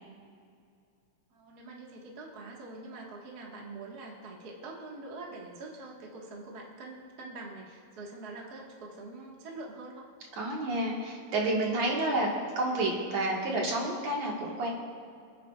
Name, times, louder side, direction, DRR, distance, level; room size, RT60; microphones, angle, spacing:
voice 1, 1.3-10.1, right 2 dB, 40° right, -2 dB, 1.5 m, -44 dB
voice 2, 10.3-14.7, right 2 dB, 60° right, -2 dB, 2.6 m, -30 dB
27.0 x 9.5 x 2.4 m, 2.4 s
omnidirectional pair, 3.8 m